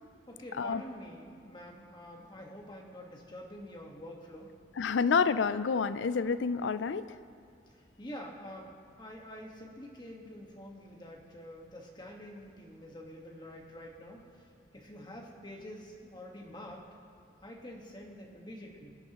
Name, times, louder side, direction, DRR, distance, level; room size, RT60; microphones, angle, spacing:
voice 1, 0.3-4.5 7.7-8.7 9.0-16.9 17.4-18.9, equal, 25° left, -1 dB, 1.4 m, -47 dB
voice 2, 4.8-7.1, left 5 dB, 80° left, 14 dB, 0.4 m, -28 dB
22.0 x 9.9 x 3.0 m, 2.5 s
head